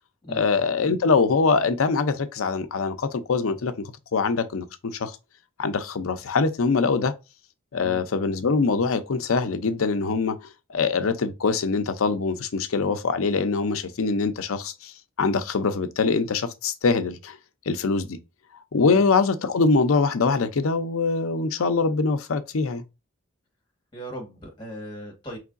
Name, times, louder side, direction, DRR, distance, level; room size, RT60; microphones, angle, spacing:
voice 1, 0.3-5.2 5.6-7.1 7.7-10.4 10.7-17.4 17.7-18.2 18.7-22.8, left 4 dB, 90° left, 0.6 m, -23 dB
voice 2, 23.9-25.4, right 1 dB, 20° left, 1.5 m, -38 dB
4.6 x 3.2 x 2.5 m
head